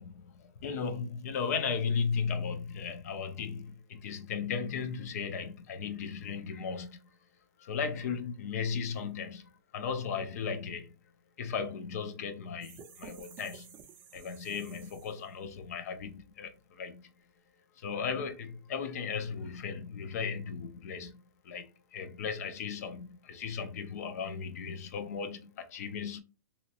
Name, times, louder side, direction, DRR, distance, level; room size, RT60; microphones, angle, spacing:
voice 1, 0.0-7.0 7.6-9.4 9.7-10.9 11.4-13.7 14.1-17.1 17.8-21.2 21.4-26.2, left 6 dB, 55° left, 0.7 m, -36 dB
sound 1, 12.6-15.4, right 7 dB, 20° right, 0.5 m, -52 dB
3.0 x 2.8 x 2.9 m
hypercardioid pair, 165°, 10 cm